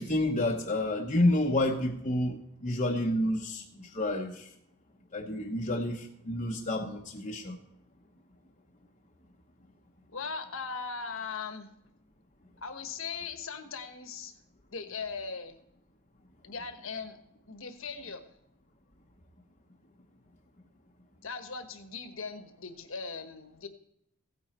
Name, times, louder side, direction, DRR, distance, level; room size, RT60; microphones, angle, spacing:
voice 1, 0.0-4.5 5.1-7.6, left 1 dB, 30° left, -1 dB, 0.9 m, -29 dB
voice 2, 10.1-11.7 12.6-14.4 14.7-15.6 16.4-17.2 17.5-18.3 21.2-23.7, left 5 dB, 60° left, 8 dB, 1.3 m, -39 dB
16.0 x 9.1 x 4.4 m, 0.77 s
head